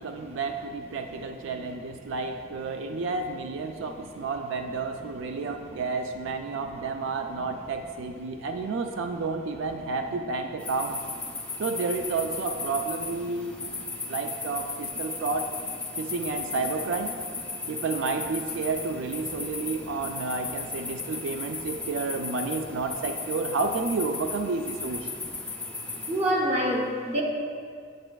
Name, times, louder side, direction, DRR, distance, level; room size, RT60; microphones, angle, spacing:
voice 1, 0.0-11.0 11.6-13.5 14.1-15.5 16.0-17.1 17.7-25.1, right 4 dB, 80° right, 5 dB, 0.4 m, -31 dB
voice 2, 3.7-4.0 5.4-5.5 6.5-6.6 7.3-7.5 8.4-8.5 9.2-9.3 13.4-13.8 19.5-19.6 20.9-21.2 21.8-21.9 25.2-25.3 26.1-27.2, equal, 35° right, 0 dB, 0.8 m, -30 dB
sound 1, 10.6-26.3, left 3 dB, 5° left, 0.5 m, -36 dB
8.7 x 7.8 x 2.3 m, 2.2 s
head